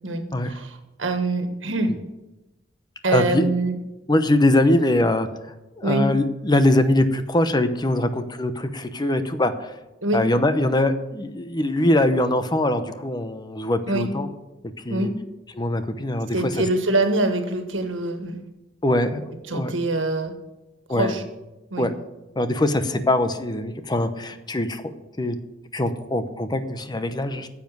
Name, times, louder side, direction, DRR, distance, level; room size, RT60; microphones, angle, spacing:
voice 1, 0.0-1.9 3.0-3.8 5.8-6.1 10.0-10.2 13.9-14.1 14.9-15.1 16.3-18.4 19.5-20.3 20.9-21.2 21.7-21.9, right 2 dB, 90° right, 7 dB, 1.7 m, -24 dB
voice 2, 3.1-3.4 4.1-5.3 5.8-9.7 10.1-14.3 14.8-15.1 15.6-16.4 18.8-19.7 20.9-21.1 21.8-21.9 22.4-24.8 25.2-25.4 25.7-27.5, left 1 dB, 20° left, 10 dB, 0.8 m, -22 dB
10.0 x 7.3 x 9.3 m, 1.0 s
head